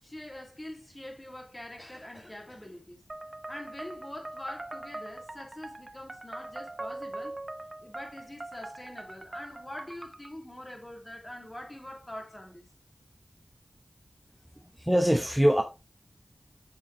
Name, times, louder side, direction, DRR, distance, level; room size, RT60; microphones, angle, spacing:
voice 1, 0.0-3.0 3.5-7.4 7.8-12.7, left 1 dB, 25° left, 2.5 m, -44 dB
sound 1, 3.1-10.3, right 2 dB, 40° right, 0.7 m, -42 dB
voice 2, 14.8-15.6, equal, 5° right, 0.9 m, -23 dB
7.1 x 5.9 x 3.1 m
cardioid pair, 45°, 0 cm